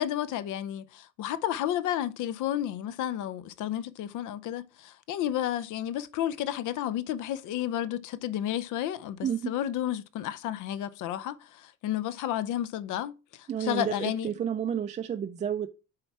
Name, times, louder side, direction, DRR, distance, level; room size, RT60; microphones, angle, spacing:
voice 1, 0.0-13.1 13.6-14.3, left 11 dB, 65° left, 0.6 m, -31 dB
voice 2, 9.2-9.5 13.5-15.7, right 8 dB, 25° right, 0.3 m, -31 dB
7.6 x 4.3 x 4.5 m
cardioid pair, 160°, 32 cm